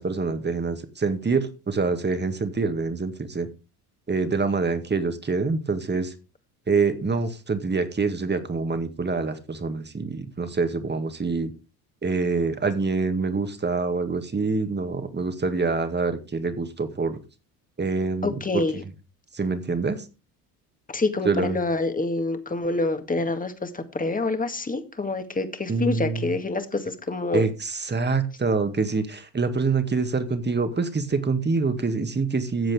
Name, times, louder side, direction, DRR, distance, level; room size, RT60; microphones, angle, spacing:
voice 1, 0.0-3.5 4.1-6.1 6.7-11.5 12.0-17.2 17.8-18.6 19.3-20.1 21.3-21.6 25.7-26.3 27.3-32.7, right 4 dB, 20° right, 8 dB, 2.0 m, -26 dB
voice 2, 18.2-18.8 20.9-27.4, left 2 dB, 20° left, 8 dB, 2.0 m, -27 dB
14.5 x 7.6 x 3.6 m, 0.32 s
hypercardioid pair, 70°, 45 cm